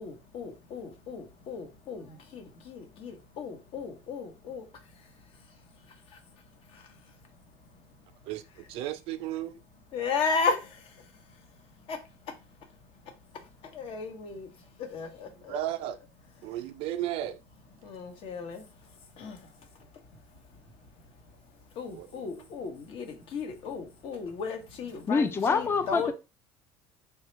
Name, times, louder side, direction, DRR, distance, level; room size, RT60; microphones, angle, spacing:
voice 1, 0.0-8.3 9.9-12.8 13.0-15.6 17.8-26.1, left 5 dB, 60° left, 0.9 m, -37 dB
voice 2, 8.3-9.6 15.5-16.0 16.4-17.4 21.9-22.5, right 12 dB, 65° right, 0.4 m, -35 dB
voice 3, 25.1-26.1, left 5 dB, 20° left, 0.4 m, -25 dB
3.3 x 2.3 x 3.0 m
supercardioid pair, 95°, 11 cm